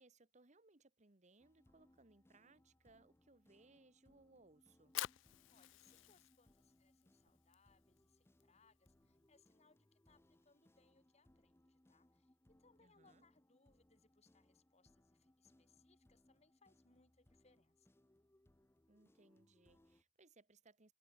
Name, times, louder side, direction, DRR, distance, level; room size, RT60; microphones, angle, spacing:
voice 1, 0.0-4.9 12.8-13.3 18.9-20.9, right 3 dB, 35° right, 1.4 m, -68 dB
sound 1, 1.4-20.0, left 1 dB, 15° left, 0.7 m, -73 dB
sound 2, 2.4-11.6, equal, 60° right, 6.7 m, -92 dB
Fire, 4.7-10.9, left 15 dB, 75° left, 0.3 m, -52 dB
voice 2, 5.5-17.9, left 4 dB, 35° left, 2.6 m, -74 dB
head